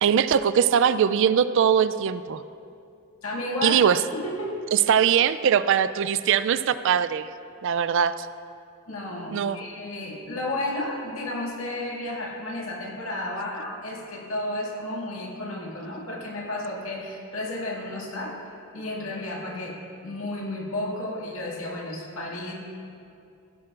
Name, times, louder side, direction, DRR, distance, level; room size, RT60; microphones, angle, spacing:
voice 1, 0.0-2.4 3.6-4.0 4.7-7.3 7.6-8.3 9.3-9.6, right 8 dB, 60° right, 14 dB, 0.3 m, -21 dB
voice 2, 3.2-3.8 4.1-4.5 8.9-18.4 18.7-19.8 20.0-22.5, left 1 dB, 80° left, -2 dB, 2.0 m, -32 dB
15.5 x 12.0 x 2.5 m, 2.6 s
head